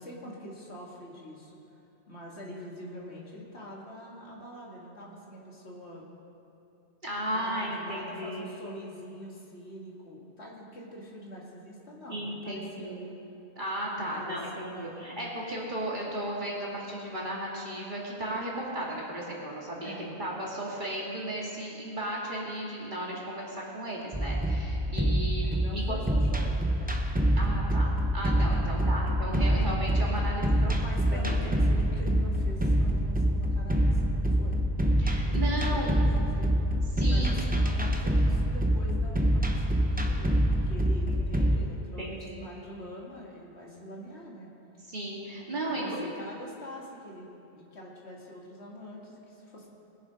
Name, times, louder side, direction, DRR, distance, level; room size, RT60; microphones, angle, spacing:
voice 1, 0.0-1.6 2.1-6.0 7.3-12.9 13.9-15.1 19.8-20.2 25.4-27.1 28.6-29.0 29.5-29.7 30.8-34.6 35.2-36.5 37.1-44.5 45.6-47.3 47.5-49.7, equal, 65° left, -3 dB, 2.2 m, -44 dB
voice 2, 7.0-8.5 12.1-13.1 13.6-26.0 27.4-31.5 35.0-36.0 37.0-37.5 41.1-41.4 42.0-42.4 44.9-46.0, right 1 dB, 45° right, -4 dB, 2.2 m, -35 dB
sound 1, 24.1-41.6, equal, 10° right, 0.6 m, -26 dB
20.5 x 7.0 x 5.1 m, 2.8 s
omnidirectional pair, 1.2 m